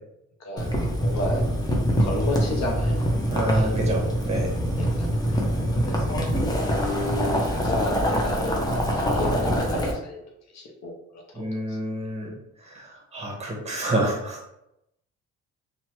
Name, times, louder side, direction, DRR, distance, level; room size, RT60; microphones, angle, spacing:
voice 1, 0.4-1.4 2.0-3.1 3.5-3.7 4.8-5.5 5.8-6.4 6.7-10.2 10.5-11.8, left 1 dB, 65° left, 0 dB, 0.7 m, -32 dB
Boiling, 0.6-9.9, equal, 15° left, 0.6 m, -24 dB
voice 2, 3.3-4.5 11.4-12.3 12.7-14.6, right 1 dB, 20° right, -1 dB, 1.0 m, -28 dB
2.8 x 2.3 x 3.0 m, 0.82 s
cardioid pair, 90°, 30 cm